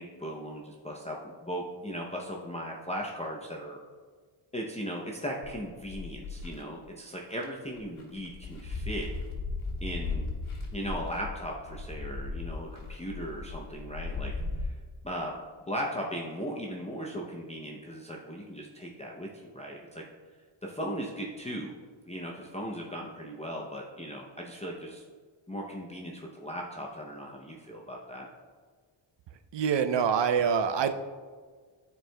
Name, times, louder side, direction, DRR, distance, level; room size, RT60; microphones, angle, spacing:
voice 1, 0.0-3.8 4.5-9.1 9.8-10.3 10.7-14.8 15.0-15.3 15.7-20.0 20.6-21.8 22.1-25.0 25.5-28.3, equal, 15° left, -3 dB, 0.6 m, -37 dB
sound 1, 5.4-6.6 7.3-7.4 7.8-14.6, left 3 dB, 75° left, 1.7 m, -36 dB
voice 2, 29.5-30.9, right 7 dB, 60° right, 9 dB, 0.6 m, -25 dB
13.0 x 4.6 x 2.2 m, 1.5 s
wide cardioid pair, 150°, 49 cm